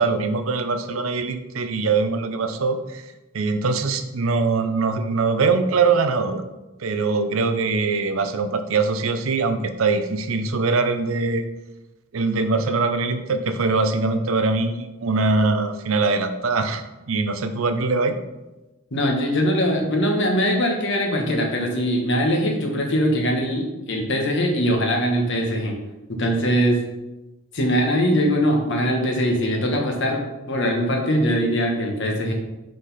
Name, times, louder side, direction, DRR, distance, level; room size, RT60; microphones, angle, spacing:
voice 1, 0.0-3.0 3.3-6.4 6.8-11.5 12.1-18.2, right 4 dB, 85° right, 9 dB, 0.6 m, -22 dB
voice 2, 18.9-25.8 26.1-26.8 27.5-32.3, equal, 60° left, 1 dB, 1.3 m, -21 dB
5.7 x 5.2 x 4.1 m, 1.0 s
head